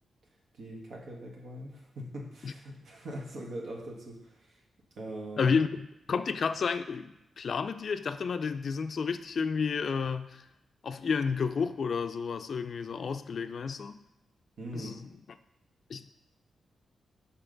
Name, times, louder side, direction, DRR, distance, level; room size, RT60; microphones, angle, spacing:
voice 1, 0.6-4.6 5.0-5.5 14.6-14.9, right 1 dB, 75° right, -2 dB, 1.4 m, -42 dB
voice 2, 5.4-10.4 10.8-14.0 14.7-15.1 15.9-16.1, left 5 dB, 60° left, 10 dB, 0.3 m, -31 dB
6.0 x 4.0 x 3.9 m, 0.89 s
cardioid pair, 80°, 0 cm